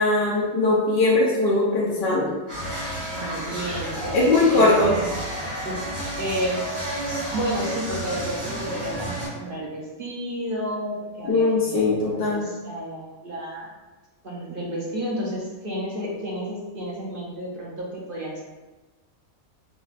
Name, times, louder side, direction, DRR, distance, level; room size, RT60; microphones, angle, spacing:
voice 1, 0.0-2.3 4.1-5.0 11.3-12.4, left 2 dB, 55° left, -5 dB, 0.7 m, -20 dB
sound 1, 2.5-9.3, right 1 dB, 65° right, 1.6 m, -31 dB
voice 2, 3.1-4.2 4.5-5.2 5.6-13.7 14.2-18.4, equal, 50° right, -5 dB, 0.8 m, -32 dB
5.0 x 2.3 x 2.4 m, 1.2 s
omnidirectional pair, 1.5 m